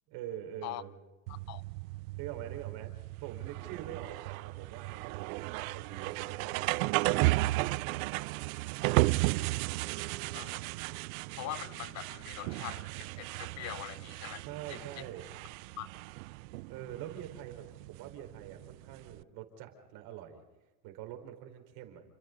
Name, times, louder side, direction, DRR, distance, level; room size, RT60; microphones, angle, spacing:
voice 1, 0.1-0.9 2.2-3.0 3.2-7.4 9.9-10.5 14.4-15.3 16.7-20.4 20.8-22.0, right 11 dB, 55° right, 4.8 m, -45 dB
voice 2, 1.3-1.6 10.3-10.6 11.4-14.4 14.7-14.9 15.8-15.9, left 14 dB, 40° left, 0.6 m, -42 dB
sound 1, 1.3-19.2, right 21 dB, 70° right, 0.6 m, -34 dB
29.5 x 26.5 x 4.0 m
supercardioid pair, 130°, 43 cm